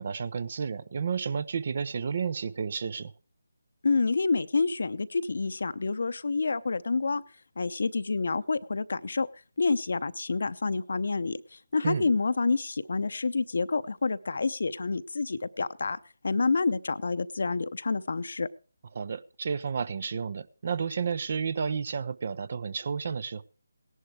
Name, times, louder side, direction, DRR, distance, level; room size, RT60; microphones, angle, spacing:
voice 1, 0.0-3.1 11.8-12.1 18.9-23.4, right 6 dB, 45° right, 0.8 m, -31 dB
voice 2, 3.8-7.2 7.6-9.3 9.6-16.0 16.2-18.5, left 4 dB, 60° left, 0.8 m, -28 dB
17.5 x 11.0 x 4.7 m
figure-of-eight pair, 155°, 0 cm